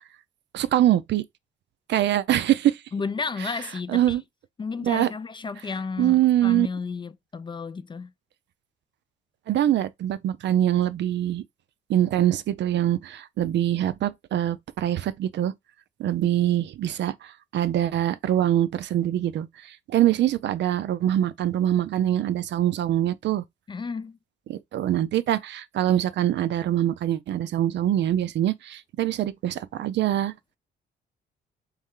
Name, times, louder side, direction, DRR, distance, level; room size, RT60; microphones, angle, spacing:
voice 1, 0.5-1.2 1.9-2.8 3.9-4.2 4.8-5.1 6.0-6.7 9.5-11.4 11.9-15.5 16.0-23.4 24.5-30.3, right 12 dB, 65° right, 0.4 m, -24 dB
voice 2, 2.9-4.2 4.6-8.1 23.7-24.2, left 4 dB, 25° left, 0.3 m, -32 dB
3.3 x 3.1 x 3.6 m
cardioid pair, 90°, 20 cm